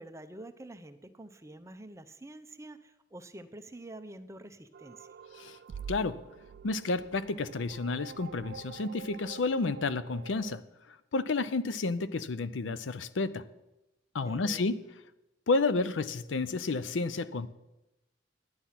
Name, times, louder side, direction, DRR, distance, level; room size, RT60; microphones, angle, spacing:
voice 1, 0.0-5.1 14.2-14.7, right 1 dB, 15° right, 9 dB, 0.7 m, -47 dB
sound 1, 4.7-10.6, right 7 dB, 60° right, 0.3 m, -47 dB
voice 2, 5.9-6.2 6.6-10.6 11.1-13.4 14.1-14.8 15.5-17.5, left 3 dB, 85° left, 14 dB, 0.6 m, -31 dB
11.0 x 9.6 x 5.8 m, 0.97 s
head